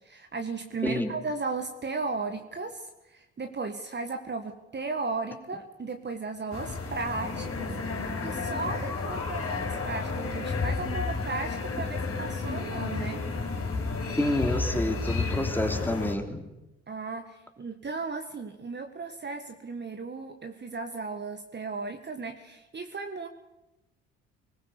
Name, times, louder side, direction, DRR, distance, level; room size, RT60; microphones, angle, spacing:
voice 1, 0.0-7.7 8.0-13.2 16.9-23.3, right 3 dB, 30° right, 6 dB, 1.8 m, -35 dB
sound 1, 6.5-16.2, left 3 dB, 40° left, 5.2 m, -31 dB
voice 2, 14.2-16.4, left 1 dB, 5° left, 5 dB, 3.1 m, -28 dB
24.5 x 20.0 x 6.8 m, 0.96 s
figure-of-eight pair, 50°, 36 cm